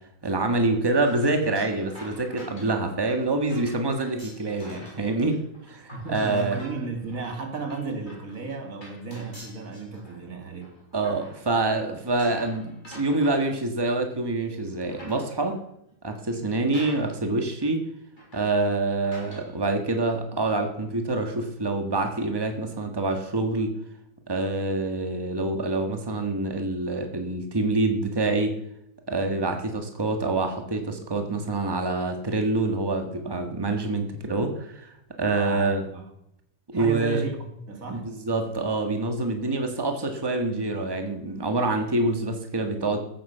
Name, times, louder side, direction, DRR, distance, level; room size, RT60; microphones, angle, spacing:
voice 1, 0.2-5.4 5.7-6.6 10.9-15.6 16.0-17.8 18.3-23.7 24.3-28.5 29.1-34.9 35.2-35.8 36.7-37.2 37.9-43.0, right 2 dB, 20° right, 5 dB, 1.5 m, -26 dB
sound 1, 1.0-5.1 5.3-11.7 12.2-14.2 14.7-15.6 16.3-16.4 16.7-17.3 17.6-17.7 18.2-18.6 19.0-19.5, equal, 35° left, 5.3 m, -47 dB
voice 2, 5.9-10.8 35.2-36.1 36.7-38.1, right 3 dB, 80° right, 5 dB, 2.4 m, -34 dB
15.0 x 8.9 x 6.7 m, 0.78 s
omnidirectional pair, 1.4 m